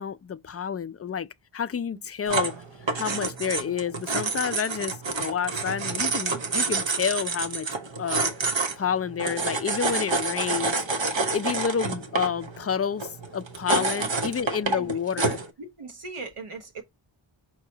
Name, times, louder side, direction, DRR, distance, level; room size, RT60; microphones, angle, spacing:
voice 1, 0.0-2.6 2.9-7.7 8.0-10.8 11.3-15.4, left 7 dB, 30° left, 0.4 m, -29 dB
sound 1, 2.3-15.5, right 3 dB, 65° right, 1.1 m, -28 dB
voice 2, 13.7-14.1 14.6-15.2 15.6-16.8, right 3 dB, 85° right, 1.3 m, -39 dB
5.6 x 3.0 x 2.7 m
wide cardioid pair, 60°, 49 cm